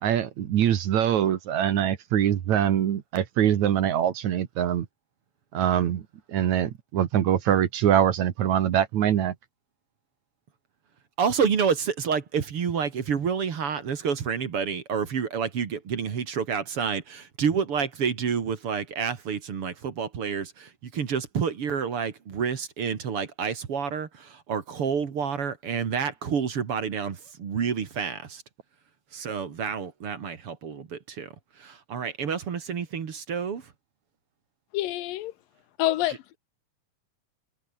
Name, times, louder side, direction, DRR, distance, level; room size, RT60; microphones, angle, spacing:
voice 1, 0.0-4.9 5.5-6.0 6.3-9.3, right 10 dB, 60° right, 2.6 m, -23 dB
voice 2, 11.2-28.4 29.1-31.3 31.6-33.6 36.1-36.2, right 6 dB, 45° right, 2.5 m, -29 dB
voice 3, 34.7-35.3 35.8-36.2, left 15 dB, 90° left, 2.7 m, -26 dB
omnidirectional pair, 3.9 m